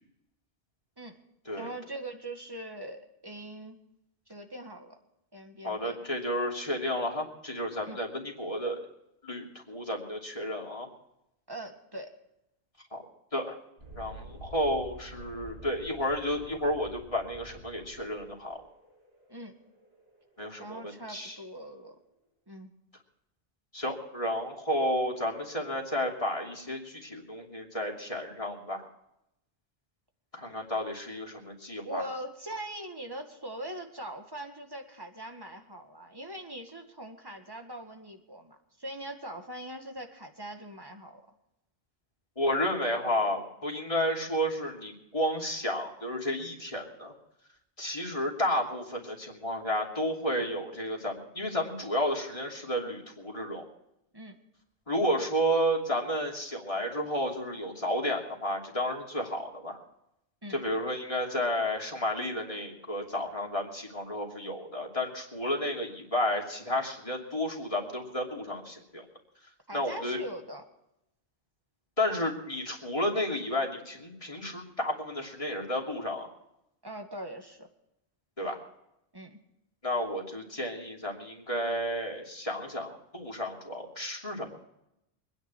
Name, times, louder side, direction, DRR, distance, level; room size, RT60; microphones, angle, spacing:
voice 1, 1.6-3.8 4.3-5.0 5.3-6.0 7.8-8.0 11.5-12.1 19.3-19.5 20.6-22.0 22.5-22.7 31.8-41.2 54.1-54.4 60.4-60.6 69.7-70.6 76.8-77.7 79.1-79.4, right 1 dB, 20° right, 4 dB, 1.9 m, -41 dB
voice 2, 5.6-8.8 9.2-10.9 12.9-13.0 13.3-13.6 14.0-18.6 20.4-21.4 23.7-28.9 30.3-32.0 42.4-47.1 47.8-53.7 54.9-59.8 60.5-69.0 69.7-70.2 72.0-76.3 78.4-78.6 79.8-84.5, equal, 35° left, 0 dB, 3.0 m, -32 dB
Thunderstorm, 13.8-21.2, right 1 dB, 80° right, 3.8 m, -49 dB
25.0 x 10.0 x 4.5 m, 0.85 s
omnidirectional pair, 1.0 m